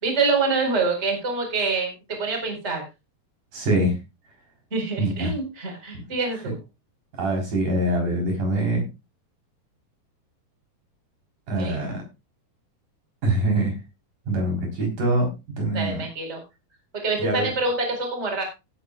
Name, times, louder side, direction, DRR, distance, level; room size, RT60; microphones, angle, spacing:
voice 1, 0.0-2.8 4.7-6.6 11.6-11.8 15.7-16.4 17.0-18.4, right 3 dB, 15° right, 3 dB, 4.3 m, -26 dB
voice 2, 3.5-3.9 5.0-5.3 7.2-8.8 11.5-12.0 13.2-13.7 14.3-15.3 15.6-16.0 17.2-17.5, right 1 dB, 55° right, 1 dB, 5.4 m, -24 dB
17.0 x 10.5 x 2.4 m, 0.25 s
omnidirectional pair, 4.5 m